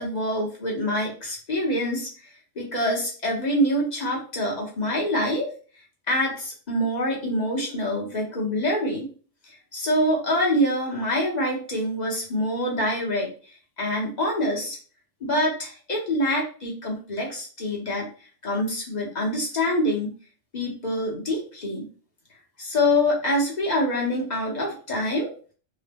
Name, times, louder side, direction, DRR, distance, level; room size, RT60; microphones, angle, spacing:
voice 1, 0.0-2.1 2.6-5.5 6.1-9.1 9.7-13.3 13.8-14.8 15.2-18.1 18.4-20.1 20.5-21.8 22.6-25.3, left 1 dB, 40° left, -2 dB, 0.8 m, -25 dB
2.8 x 2.0 x 3.3 m, 0.40 s
omnidirectional pair, 1.3 m